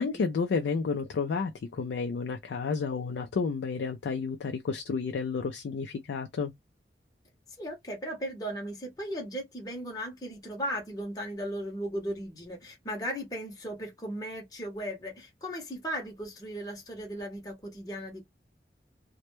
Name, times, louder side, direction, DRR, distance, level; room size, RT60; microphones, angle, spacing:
voice 1, 0.0-6.5, left 5 dB, 75° left, 0.3 m, -31 dB
voice 2, 7.6-18.2, equal, 20° left, 0.7 m, -37 dB
2.1 x 2.0 x 2.8 m
head